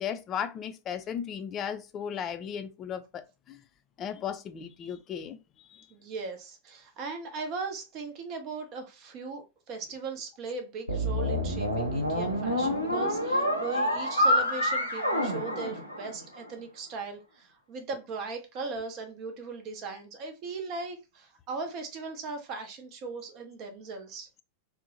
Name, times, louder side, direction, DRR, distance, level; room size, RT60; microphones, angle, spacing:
voice 1, 0.0-3.6 4.0-5.4 5.7-5.9, left 8 dB, 30° left, 0.3 m, -36 dB
voice 2, 5.9-24.3, right 4 dB, 40° right, 0.5 m, -38 dB
sound 1, 10.9-16.4, equal, 90° right, 0.5 m, -27 dB
2.6 x 2.0 x 2.6 m
figure-of-eight pair, 90°, 0 cm